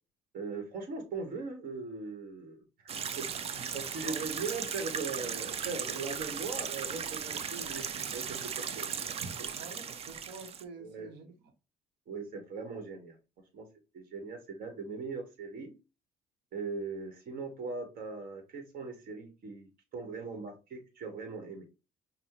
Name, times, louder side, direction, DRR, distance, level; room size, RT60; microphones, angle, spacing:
voice 1, 0.3-9.1 10.8-11.1 12.1-13.1 13.5-13.7 13.9-15.7 16.5-21.7, right 4 dB, 60° right, 6 dB, 1.2 m, -40 dB
sound 1, 2.9-10.6, right 7 dB, 35° right, 0.4 m, -37 dB
voice 2, 3.5-4.2 9.2-9.3 9.5-11.5, right 4 dB, 85° right, 7 dB, 0.9 m, -48 dB
5.4 x 2.2 x 2.9 m, 0.28 s
cardioid pair, 110°, 17 cm